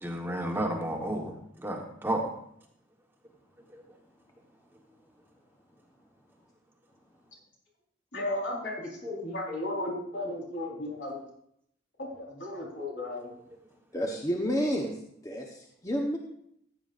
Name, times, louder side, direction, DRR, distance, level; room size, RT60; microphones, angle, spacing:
voice 1, 0.0-2.3 3.7-3.8, right 1 dB, 10° right, 1 dB, 1.3 m, -32 dB
voice 2, 8.1-11.2 12.0-13.3, left 1 dB, 70° left, -4 dB, 4.1 m, -35 dB
voice 3, 13.9-15.0 15.2-16.2, equal, 20° left, 0 dB, 1.0 m, -30 dB
15.0 x 9.0 x 2.5 m, 0.70 s
head